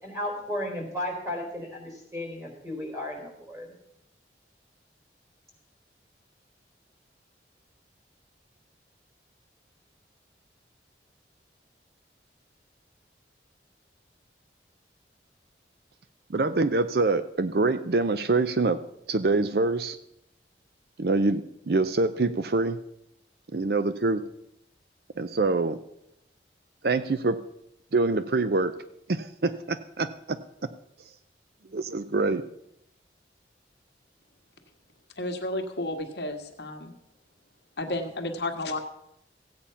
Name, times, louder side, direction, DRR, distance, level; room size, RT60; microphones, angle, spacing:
voice 1, 0.0-3.7, left 1 dB, 15° right, 0 dB, 4.4 m, -34 dB
voice 2, 16.3-18.8 19.1-20.0 21.0-22.8 23.5-24.2 25.2-25.8 26.8-27.4 27.9-28.7 29.1-30.4 31.7-32.4, right 3 dB, 55° right, 12 dB, 0.6 m, -25 dB
voice 3, 35.2-36.9 37.8-38.8, left 1 dB, 70° left, 4 dB, 1.6 m, -32 dB
15.5 x 8.7 x 5.7 m, 0.80 s
head